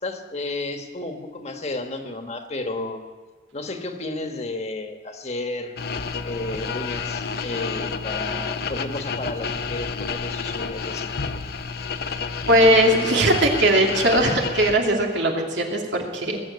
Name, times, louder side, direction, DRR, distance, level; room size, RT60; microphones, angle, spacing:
voice 1, 0.0-3.0 3.5-5.7 6.2-11.1, left 2 dB, 35° left, 5 dB, 1.4 m, -32 dB
sound 1, 5.8-14.8, left 5 dB, 60° left, 0.7 m, -30 dB
voice 2, 12.5-16.4, right 1 dB, 85° right, 0 dB, 2.6 m, -19 dB
20.5 x 7.5 x 8.6 m, 1.4 s
head